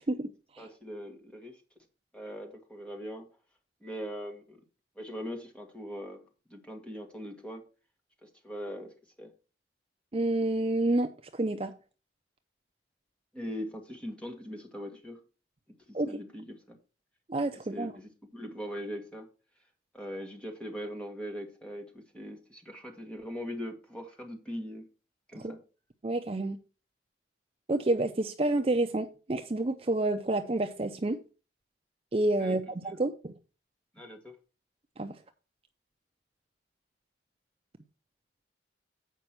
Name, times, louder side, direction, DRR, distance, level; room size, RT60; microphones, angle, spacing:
voice 1, 0.0-0.6 10.1-11.7 15.9-16.2 17.3-17.9 25.3-25.5 26.0-26.6 27.7-31.2 32.1-33.3 35.0-35.1, right 2 dB, 30° right, 0.5 m, -29 dB
voice 2, 0.6-1.6 2.1-3.3 3.8-4.6 5.0-6.2 6.5-7.6 8.2-9.3 13.3-15.2 15.9-16.8 17.7-19.3 19.9-24.9 25.3-25.6 32.4-32.6 34.0-34.4, equal, 5° left, 1.6 m, -41 dB
8.1 x 5.3 x 5.8 m
head